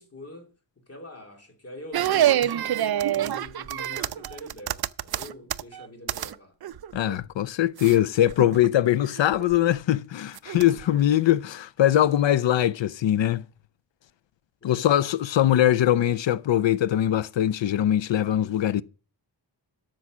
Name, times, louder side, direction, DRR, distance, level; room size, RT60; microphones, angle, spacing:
voice 1, 0.0-2.8 3.1-6.6 14.6-15.4, left 2 dB, 30° left, 2.4 m, -45 dB
sound 1, 1.9-6.4 6.6-7.2 7.8-8.0 8.3-8.7 9.2-9.7 10.4-11.0, right 11 dB, 55° right, 0.5 m, -27 dB
voice 2, 6.9-13.4 14.6-18.8, left 12 dB, 75° left, 0.6 m, -22 dB
12.5 x 6.2 x 6.1 m
wide cardioid pair, 170°, 45 cm